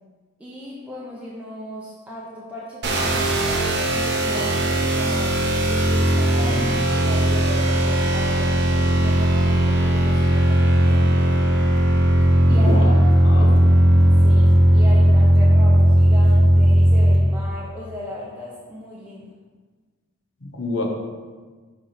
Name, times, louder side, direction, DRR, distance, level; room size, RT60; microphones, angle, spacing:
voice 1, 0.4-5.4 5.7-11.2 12.5-12.9 13.4-13.8 14.2-19.3, equal, 5° right, -6 dB, 0.7 m, -36 dB
sound 1, 2.8-17.2, equal, 50° right, 0.8 m, -17 dB
voice 2, 6.3-6.8 12.5-13.0 13.2-13.7 20.4-20.8, left 2 dB, 60° left, 1 dB, 1.1 m, -28 dB
6.4 x 3.4 x 5.9 m, 1.4 s
head